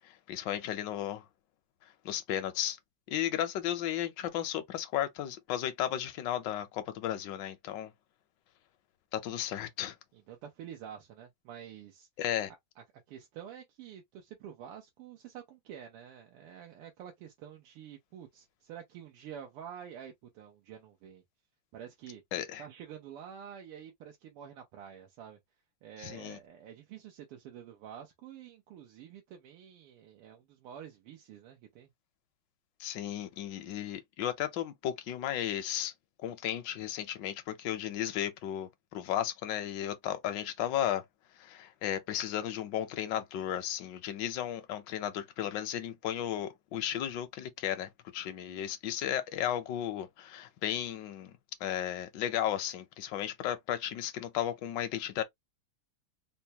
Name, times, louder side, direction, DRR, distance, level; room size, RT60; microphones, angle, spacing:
voice 1, 0.0-1.2 2.0-2.8 3.1-7.9 9.1-10.0 12.2-12.5 22.3-22.6 26.0-26.4 32.8-35.9 36.2-41.0 41.4-51.3 51.6-55.2, left 11 dB, 70° left, 1.2 m, -34 dB
voice 2, 10.1-12.1 12.5-21.2 21.7-22.2 22.6-25.4 25.8-31.9, right 9 dB, 85° right, 1.7 m, -48 dB
4.3 x 2.2 x 2.8 m
omnidirectional pair, 2.4 m